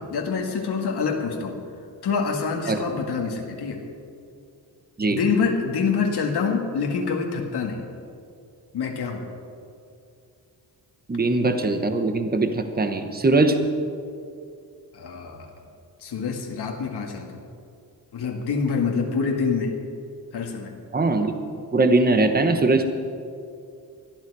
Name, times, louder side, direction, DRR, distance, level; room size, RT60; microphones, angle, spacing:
voice 1, 0.0-1.6 2.0-3.8 5.1-7.8 8.7-9.3 14.9-15.5 16.0-17.4 18.1-19.7 20.3-20.8, left 5 dB, 80° left, 1 dB, 2.0 m, -26 dB
voice 2, 11.1-13.5 20.9-21.3 21.7-22.8, right 2 dB, 25° right, 7 dB, 1.2 m, -21 dB
21.0 x 12.5 x 4.8 m, 2.5 s
cardioid pair, 110°, 39 cm